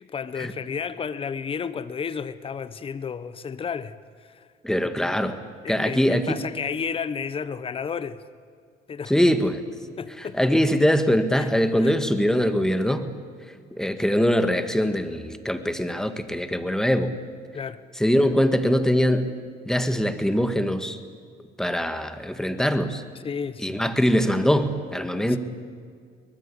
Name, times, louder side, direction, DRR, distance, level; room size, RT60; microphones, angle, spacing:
voice 1, 0.0-4.5 5.6-8.2 8.9-9.1 10.0-10.4 11.4-11.5 11.8-11.9 17.5-17.8 23.2-23.8 25.3-25.4, left 6 dB, 35° left, 1.1 m, -32 dB
voice 2, 4.6-5.4 5.7-6.5 9.1-9.6 10.4-13.1 13.7-17.1 18.0-19.3 19.7-21.0 21.6-23.0 23.6-25.4, equal, 5° left, 1.8 m, -22 dB
23.5 x 20.0 x 8.5 m
cardioid pair, 110°, 17 cm